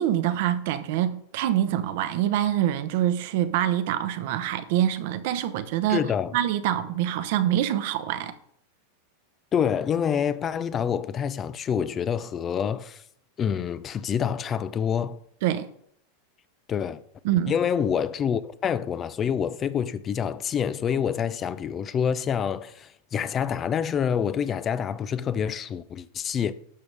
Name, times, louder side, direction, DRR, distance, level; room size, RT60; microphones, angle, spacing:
voice 1, 0.0-6.1 6.3-8.3 15.4-15.7 17.2-17.5, right 11 dB, 60° right, 0.8 m, -25 dB
voice 2, 5.9-6.3 9.5-13.0 13.4-15.2 16.7-17.0 17.5-26.5, left 8 dB, 25° left, 0.4 m, -27 dB
12.0 x 7.0 x 3.4 m
supercardioid pair, 150°, 0 cm